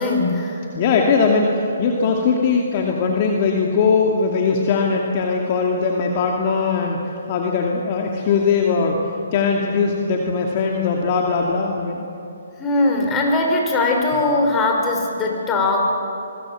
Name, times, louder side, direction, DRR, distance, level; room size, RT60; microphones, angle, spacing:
voice 1, 0.0-0.6 12.6-15.8, left 2 dB, 15° left, 1 dB, 5.1 m, -20 dB
voice 2, 0.7-9.0 9.3-12.0, left 5 dB, 40° left, 0 dB, 2.5 m, -20 dB
25.5 x 23.5 x 7.7 m, 2.8 s
hypercardioid pair, 140°, 0 cm